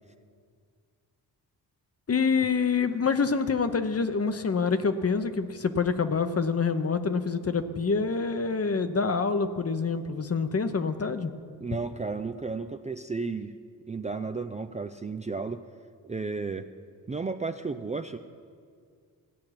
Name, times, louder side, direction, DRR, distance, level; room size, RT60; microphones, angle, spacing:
voice 1, 2.1-11.3, left 5 dB, 35° left, 10 dB, 0.9 m, -26 dB
voice 2, 11.6-13.5 13.9-15.6 16.0-16.7 17.1-18.2, right 4 dB, 15° right, 7 dB, 0.5 m, -33 dB
15.5 x 8.6 x 5.9 m, 2.1 s
supercardioid pair, 50°, 42 cm